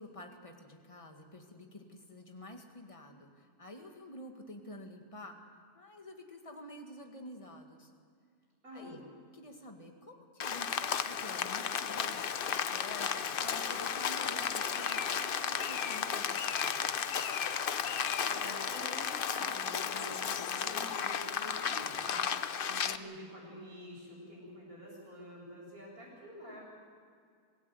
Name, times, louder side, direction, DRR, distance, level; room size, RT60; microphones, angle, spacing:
voice 1, 0.0-5.4 5.8-7.9 8.7-9.0 9.3-12.3 12.7-17.0, left 1 dB, 20° left, 3 dB, 2.1 m, -49 dB
voice 2, 8.6-9.0 18.2-26.6, equal, 70° right, -4 dB, 8.7 m, -48 dB
Rain, 10.4-23.0, left 7 dB, 50° left, 0.7 m, -34 dB
26.5 x 17.0 x 8.1 m, 2.2 s
omnidirectional pair, 1.6 m